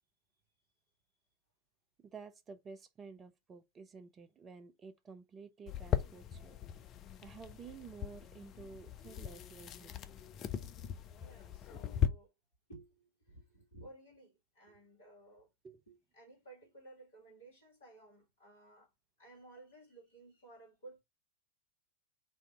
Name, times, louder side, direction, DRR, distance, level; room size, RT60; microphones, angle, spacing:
voice 1, 2.0-6.6 7.2-9.9 15.6-15.8, right 5 dB, 25° right, 0.5 m, -52 dB
sound 1, 5.7-12.1, left 9 dB, 35° left, 0.5 m, -39 dB
voice 2, 11.2-12.3 12.7-15.5 15.9-18.9 19.2-21.0, right 2 dB, 60° left, 2.3 m, -56 dB
4.2 x 2.7 x 4.5 m
figure-of-eight pair, 90°, 0 cm